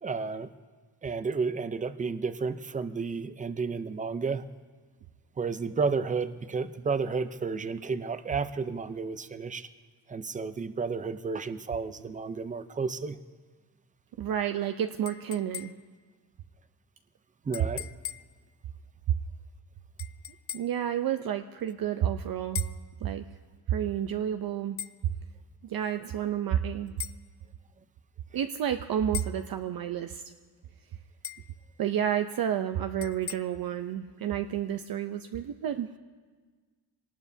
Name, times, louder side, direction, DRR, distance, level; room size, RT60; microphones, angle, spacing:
voice 1, 0.0-0.5 1.0-4.5 5.4-9.7 10.1-13.2 17.5-17.9, right 4 dB, 20° right, 11 dB, 0.5 m, -32 dB
voice 2, 14.2-15.7 20.5-22.6 23.0-23.3 23.7-24.8 25.0-25.1 25.6-26.9 28.3-30.2 31.8-35.9, right 10 dB, 60° right, 7 dB, 0.6 m, -30 dB
sound 1, 15.1-16.0 17.5-18.4 20.0-20.8 22.6-22.9 24.8-25.0 27.0-27.2 29.1-29.5 31.2-31.6 33.0-33.4, left 9 dB, 35° left, 0.4 m, -39 dB
25.0 x 19.0 x 2.7 m, 1.4 s
cardioid pair, 135°, 40 cm